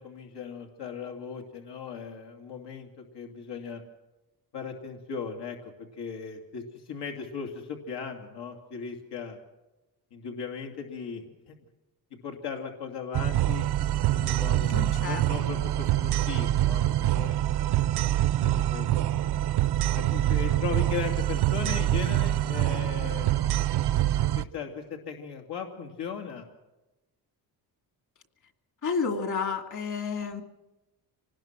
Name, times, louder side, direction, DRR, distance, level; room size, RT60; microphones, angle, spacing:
voice 1, 0.0-2.9 3.1-3.8 4.5-9.4 10.1-11.6 12.2-13.7 14.1-17.4 18.4-18.9 19.9-23.4 24.3-26.5, left 6 dB, 80° left, 2 dB, 2.9 m, -37 dB
sound 1, 13.1-24.4, right 13 dB, 75° right, 0.8 m, -25 dB
voice 2, 14.7-15.5 28.8-30.4, left 5 dB, 50° left, 6 dB, 2.7 m, -31 dB
25.5 x 20.0 x 6.1 m, 1.0 s
cardioid pair, 160°, 39 cm